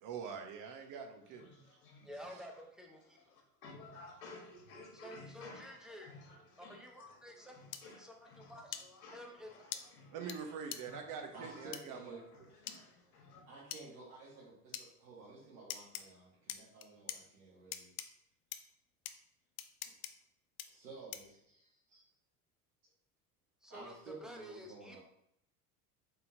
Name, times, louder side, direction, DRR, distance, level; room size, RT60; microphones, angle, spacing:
voice 1, 0.0-1.5 2.0-2.4 10.1-12.1, right 6 dB, 45° right, 4 dB, 0.9 m, -45 dB
voice 2, 1.3-2.0 3.3-10.3 10.9-11.0 11.4-11.6 12.3-13.4, left 3 dB, 70° left, 1 dB, 1.2 m, -55 dB
voice 3, 2.0-3.2 4.9-6.1 6.6-7.6 7.8-8.8 9.1-9.5 23.6-23.9 24.2-25.0, equal, ahead, 1 dB, 0.6 m, -51 dB
sound 1, 7.7-7.8 8.7-8.8 9.7-9.8 10.3-10.4 10.7-10.8 11.7-11.8 12.7-12.8 13.7-13.8 14.7-14.9 15.7-16.0 16.5-17.2 17.7-18.1 18.5-18.6 19.1-19.2 19.6-20.1 20.6-20.7 21.1-21.3, left 11 dB, 45° left, 0.4 m, -42 dB
voice 4, 11.3-12.2 13.4-17.9 20.7-22.0 23.7-25.0, right 3 dB, 75° right, -9 dB, 1.5 m, -53 dB
4.1 x 3.8 x 2.7 m, 0.75 s
figure-of-eight pair, 70°, 45 cm